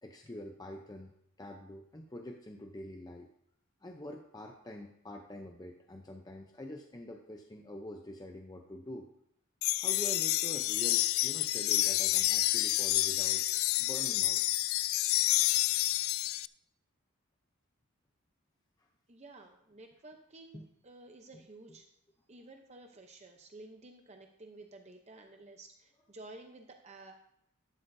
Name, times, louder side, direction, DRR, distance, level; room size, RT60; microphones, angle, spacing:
voice 1, 0.0-1.1 1.4-3.3 3.8-9.1 9.8-13.4 13.8-14.4 18.8-18.9 20.5-20.7 21.3-21.4 21.7-21.8, left 1 dB, 20° left, 3 dB, 0.6 m, -45 dB
sound 1, 9.6-16.5, left 16 dB, 65° left, 0.3 m, -29 dB
voice 2, 19.1-21.9 22.3-27.2, right 2 dB, 30° right, 4 dB, 0.7 m, -52 dB
12.5 x 11.5 x 2.7 m, 0.75 s
head